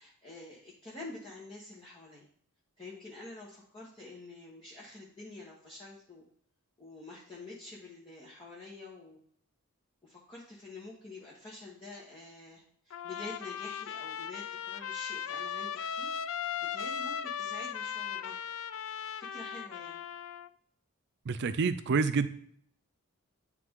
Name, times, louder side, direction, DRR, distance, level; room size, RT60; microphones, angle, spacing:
voice 1, 0.0-2.3 2.8-6.2 6.8-9.2 10.0-16.1 16.7-18.4 19.2-20.0, left 2 dB, 25° left, -7 dB, 1.2 m, -47 dB
Trumpet, 12.9-20.5, left 8 dB, 65° left, 0.3 m, -37 dB
voice 2, 21.3-22.3, right 4 dB, 55° right, 11 dB, 0.5 m, -28 dB
9.3 x 3.3 x 3.7 m, 0.63 s
head